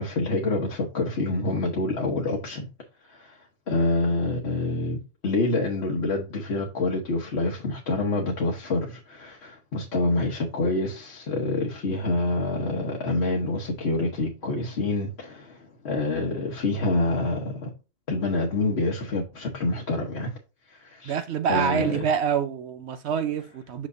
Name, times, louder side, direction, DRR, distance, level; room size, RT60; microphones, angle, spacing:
voice 1, 0.0-2.7 3.1-17.7 18.1-20.3 20.7-21.1 21.5-22.0, left 2 dB, 70° left, 1.3 m, -27 dB
voice 2, 21.0-23.9, right 7 dB, 75° right, 0.9 m, -26 dB
6.2 x 6.0 x 2.6 m
omnidirectional pair, 1.1 m